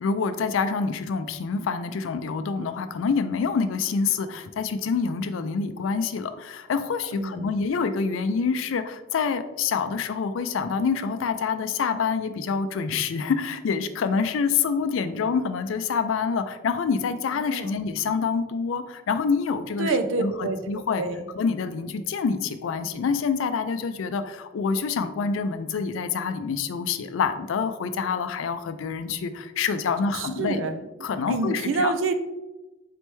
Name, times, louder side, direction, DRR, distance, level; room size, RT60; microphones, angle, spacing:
voice 1, 0.0-19.9 20.2-21.0 21.4-30.6 31.0-31.9, left 5 dB, 80° left, 10 dB, 0.4 m, -26 dB
voice 2, 7.1-7.6 17.3-17.8 19.8-20.6 21.0-21.3 30.1-32.1, right 3 dB, 85° right, 9 dB, 0.4 m, -28 dB
4.1 x 3.3 x 3.1 m, 1.1 s
head